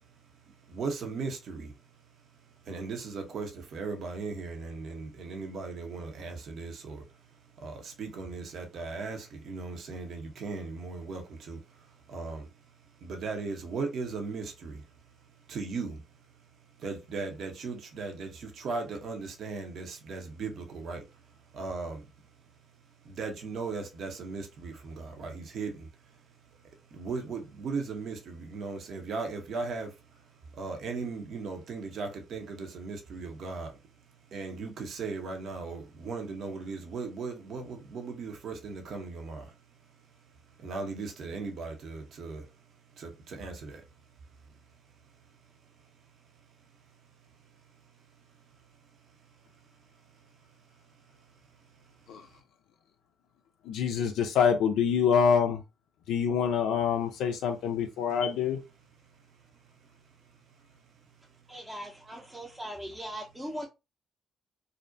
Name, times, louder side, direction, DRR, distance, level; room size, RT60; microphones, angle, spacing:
voice 1, 0.7-1.7 2.7-7.0 7.6-11.6 12.1-12.5 13.0-14.8 15.5-16.0 16.8-21.0 21.5-22.0 23.1-25.7 26.9-29.9 30.6-33.7 34.3-39.4 40.6-42.4 43.0-43.8, right 4 dB, 65° right, 0.7 m, -37 dB
voice 2, 53.6-55.6 56.1-58.6, left 7 dB, 75° left, 0.3 m, -26 dB
voice 3, 61.5-63.7, equal, 10° right, 0.5 m, -39 dB
2.5 x 2.1 x 2.5 m
hypercardioid pair, 50°, 0 cm